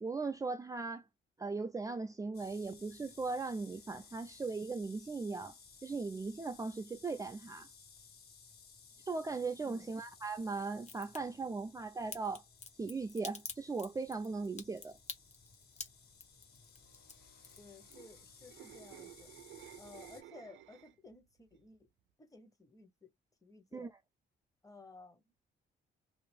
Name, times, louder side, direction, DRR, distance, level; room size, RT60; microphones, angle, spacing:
voice 1, 0.0-1.0 1.4-5.5 5.8-7.7 9.0-12.4 12.8-15.0 23.7-23.9, right 4 dB, 15° right, 0.4 m, -38 dB
sound 1, 2.3-20.2, left 5 dB, 55° left, 1.7 m, -59 dB
Crack, 10.8-11.2 12.1-18.4 18.7-19.3 19.6-19.7, left 4 dB, 35° left, 1.2 m, -47 dB
voice 2, 17.6-19.3 19.8-21.9 22.2-23.1 23.4-23.9 24.6-25.2, left 3 dB, 15° left, 1.1 m, -56 dB
sound 2, 17.8-21.1 21.5-21.8, right 13 dB, 75° right, 0.5 m, -54 dB
2.7 x 2.5 x 3.4 m
cardioid pair, 90°, 20 cm